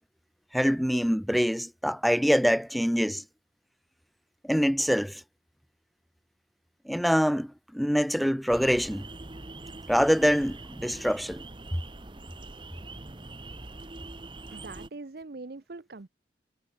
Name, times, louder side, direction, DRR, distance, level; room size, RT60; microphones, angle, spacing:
voice 1, 0.5-3.2 4.4-5.2 6.9-9.1 9.9-11.4, equal, ahead, 0.9 m, -25 dB
sound 1, 8.5-14.9, right 2 dB, 25° right, 1.2 m, -43 dB
voice 2, 14.5-16.1, right 3 dB, 55° right, 0.7 m, -42 dB
head